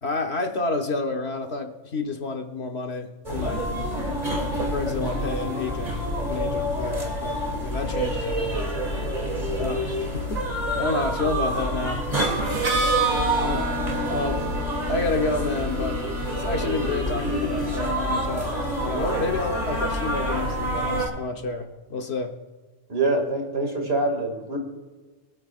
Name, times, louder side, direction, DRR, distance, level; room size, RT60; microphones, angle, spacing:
voice 1, 0.0-3.7 4.7-8.7 9.6-10.5 10.7-12.0 13.4-13.7 14.1-14.4 14.9-16.0 16.4-22.3, left 3 dB, 60° left, 5 dB, 1.2 m, -29 dB
sound 1, 3.2-21.1, equal, 30° right, 2.8 m, -27 dB
Harmonica, 12.4-18.2, right 3 dB, 70° right, 1.7 m, -30 dB
voice 2, 22.9-24.6, right 2 dB, 50° right, 2 dB, 2.5 m, -25 dB
24.0 x 8.6 x 2.5 m, 1.3 s
omnidirectional pair, 1.3 m